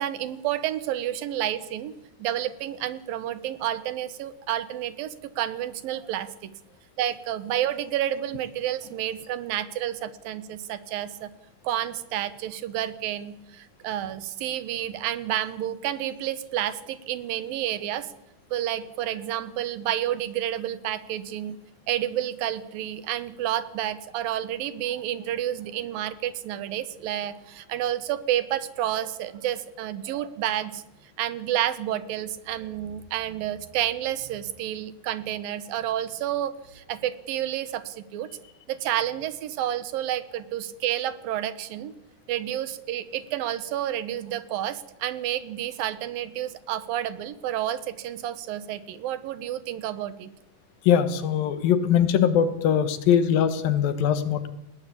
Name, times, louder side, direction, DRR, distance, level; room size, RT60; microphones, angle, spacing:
voice 1, 0.0-1.9 2.2-6.5 7.0-11.3 11.6-18.1 18.5-21.6 21.9-30.8 31.2-38.3 38.7-41.9 42.3-50.3, right 12 dB, 85° right, 15 dB, 2.9 m, -30 dB
voice 2, 50.8-54.5, left 8 dB, 85° left, 12 dB, 3.2 m, -21 dB
20.0 x 17.5 x 8.5 m, 0.89 s
omnidirectional pair, 4.0 m